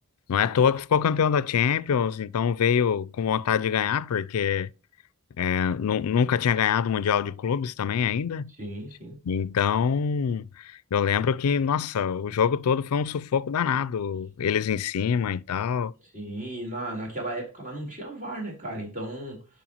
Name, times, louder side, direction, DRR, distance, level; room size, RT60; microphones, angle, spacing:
voice 1, 0.3-4.7 5.4-8.5 9.2-15.9, left 7 dB, 85° left, 0.4 m, -25 dB
voice 2, 8.6-9.2 16.0-19.4, right 1 dB, 35° right, 3.7 m, -35 dB
11.0 x 5.4 x 2.9 m
head